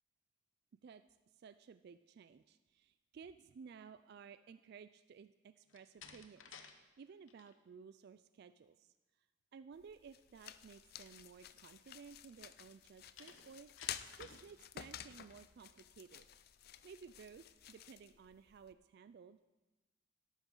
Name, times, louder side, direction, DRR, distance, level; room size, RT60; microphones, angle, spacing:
voice 1, 1.3-8.9 9.5-13.8 14.1-16.3 16.8-19.4, right 6 dB, 55° right, 12 dB, 0.3 m, -56 dB
Slam, 5.7-6.8 7.1-7.5 13.2-14.5, left 6 dB, 75° left, 0.9 m, -56 dB
sound 1, 9.7-18.7, left 10 dB, 50° left, 0.4 m, -52 dB
13.0 x 11.5 x 3.8 m, 1.2 s
head